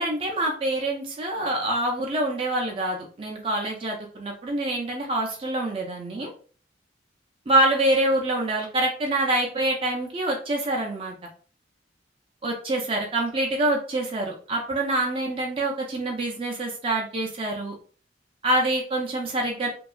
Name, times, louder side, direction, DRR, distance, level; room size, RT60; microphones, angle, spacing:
voice 1, 0.0-6.3 7.5-11.1 12.4-17.7 18.4-19.7, right 1 dB, 30° right, -1 dB, 0.4 m, -26 dB
2.7 x 2.3 x 2.4 m, 0.41 s
head